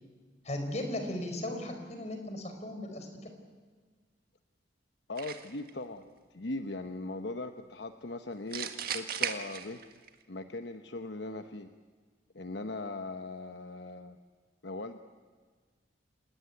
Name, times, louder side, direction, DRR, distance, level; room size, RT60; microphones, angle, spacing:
voice 1, 0.4-3.1, left 1 dB, 40° left, 5 dB, 4.4 m, -36 dB
voice 2, 5.1-6.0 6.3-9.8 10.3-11.7 12.3-14.2 14.6-15.0, left 2 dB, 65° left, 7 dB, 1.0 m, -39 dB
sound 1, 5.2-5.7 8.5-10.1, right 8 dB, 55° right, 1.8 m, -36 dB
27.5 x 19.0 x 9.7 m, 1.5 s
head